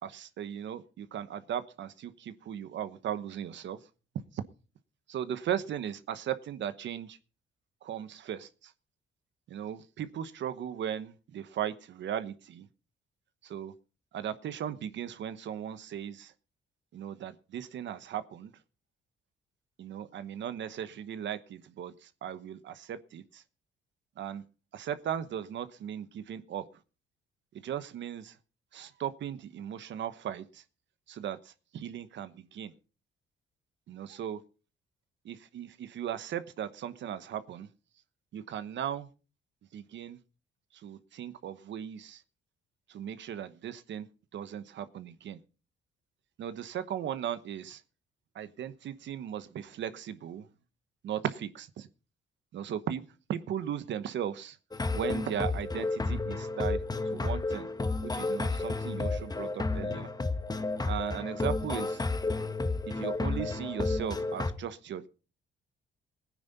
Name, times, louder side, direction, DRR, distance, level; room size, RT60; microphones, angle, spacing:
voice 1, 0.0-3.8 4.3-4.4 5.1-7.2 7.8-8.7 9.5-12.7 13.4-13.7 14.1-16.3 16.9-18.5 19.8-23.4 24.2-24.4 24.7-26.6 27.5-28.4 28.7-30.6 31.1-32.7 33.9-34.4 35.2-37.7 38.3-39.1 39.7-40.2 40.7-42.2 42.9-44.1 44.3-45.4 46.4-47.8 48.3-50.5 51.0-51.9 52.5-54.6 54.9-57.7 58.0-60.1 60.8-62.0 62.9-65.1, right 9 dB, 70° right, 12 dB, 1.1 m, -37 dB
sound 1, 54.7-64.5, left 3 dB, 20° left, 1.3 m, -31 dB
17.5 x 9.7 x 4.1 m, 0.35 s
cardioid pair, 90°, 20 cm